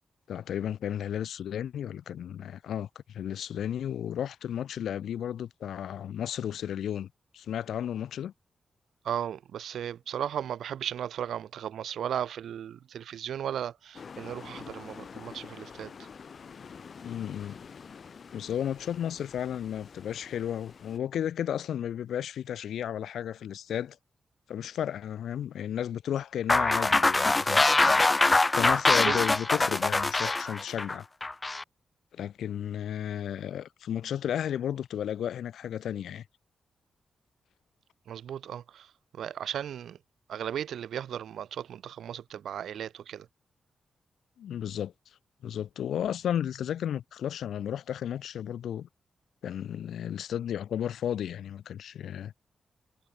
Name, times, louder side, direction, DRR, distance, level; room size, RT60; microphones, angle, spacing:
voice 1, 0.3-7.1 7.3-8.3 17.0-17.6 18.3-24.0 24.5-28.2 28.6-31.1 32.1-36.2 44.4-44.9 45.4-48.9 49.4-52.3, left 10 dB, 85° left, 0.9 m, -33 dB
voice 2, 9.0-15.9 29.1-29.2 38.1-38.9 39.2-40.0 40.3-43.3, right 9 dB, 80° right, 0.5 m, -35 dB
sound 1, 13.9-21.0, left 6 dB, 60° left, 1.7 m, -47 dB
sound 2, 26.5-31.6, left 2 dB, 25° left, 0.4 m, -23 dB
cardioid pair, 60°, 0 cm